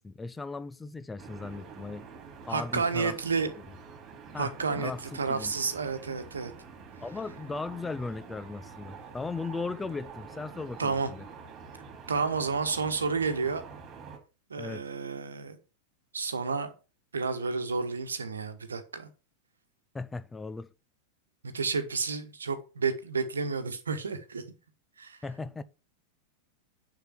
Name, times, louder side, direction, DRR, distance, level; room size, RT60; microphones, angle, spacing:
voice 1, 0.0-2.1 2.5-3.5 4.3-5.5 7.0-11.2 14.6-14.9 19.9-20.7 25.2-25.6, left 3 dB, 10° left, 0.6 m, -37 dB
sound 1, 1.2-14.2, right 5 dB, 30° right, 2.9 m, -47 dB
voice 2, 2.5-3.5 4.3-6.5 10.8-11.1 12.1-13.6 14.5-15.6 16.1-16.7 17.1-19.1 21.5-24.4 25.0-25.2, right 4 dB, 70° right, 1.2 m, -31 dB
6.9 x 6.0 x 7.1 m
figure-of-eight pair, 90°, 0 cm